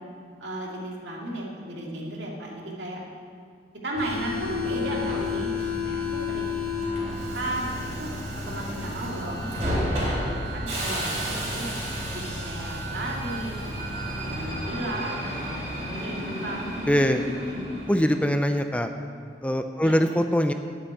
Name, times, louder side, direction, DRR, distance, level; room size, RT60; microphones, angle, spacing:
voice 1, 0.4-3.0 3.8-5.5 5.8-8.1 8.5-11.7 12.0-15.4 15.9-16.6 17.4-17.7 19.8-20.0, right 1 dB, 85° right, -2 dB, 2.5 m, -35 dB
Subway metro underground, 3.9-18.3, left 1 dB, 40° right, 3.8 m, -31 dB
voice 2, 16.9-17.2 17.9-18.9 19.4-20.5, equal, 5° left, 7 dB, 0.4 m, -22 dB
9.0 x 8.0 x 9.0 m, 2.1 s
head